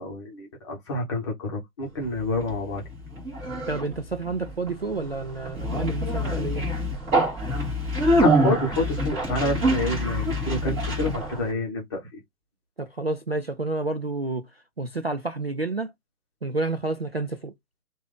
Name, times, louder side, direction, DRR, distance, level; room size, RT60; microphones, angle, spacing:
voice 1, 0.0-2.8 8.2-12.0, left 1 dB, 20° left, 1.1 m, -28 dB
Conversation, 2.0-11.5, equal, 15° right, 1.5 m, -26 dB
voice 2, 3.7-6.7 12.8-15.9 16.4-17.5, right 3 dB, 45° right, 0.4 m, -30 dB
3.3 x 2.6 x 3.6 m
figure-of-eight pair, 140°, 46 cm